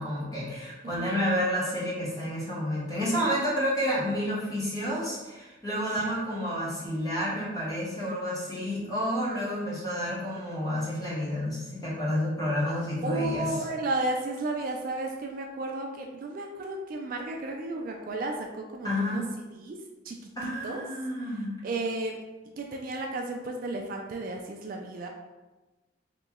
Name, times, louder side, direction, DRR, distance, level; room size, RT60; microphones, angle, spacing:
voice 1, 0.0-13.5 18.8-19.3 20.4-21.6, equal, 20° left, -7 dB, 1.1 m, -30 dB
voice 2, 0.8-1.3 5.9-6.2 13.0-19.2 19.5-20.8 21.6-22.2 22.6-25.1, right 2 dB, 45° right, 2 dB, 0.3 m, -33 dB
3.0 x 2.9 x 3.6 m, 1.1 s
head